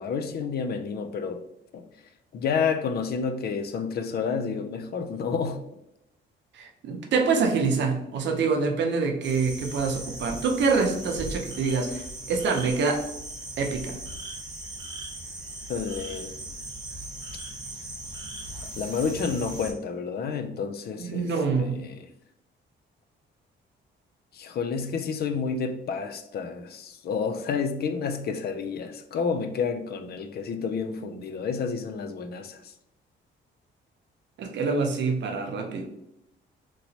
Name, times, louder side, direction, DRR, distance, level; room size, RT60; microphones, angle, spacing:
voice 1, 0.0-1.4 1.7-1.8 2.3-5.6 15.7-16.3 18.8-21.3 21.6-22.0 24.3-32.6, left 5 dB, 55° left, 0.4 m, -30 dB
voice 2, 6.5-13.0 13.6-14.0 21.0-21.8 34.4-35.8, right 4 dB, 65° right, 0.7 m, -26 dB
sound 1, 9.2-19.7, right 1 dB, 20° right, 0.9 m, -38 dB
3.0 x 2.9 x 2.8 m
cardioid pair, 90°, 20 cm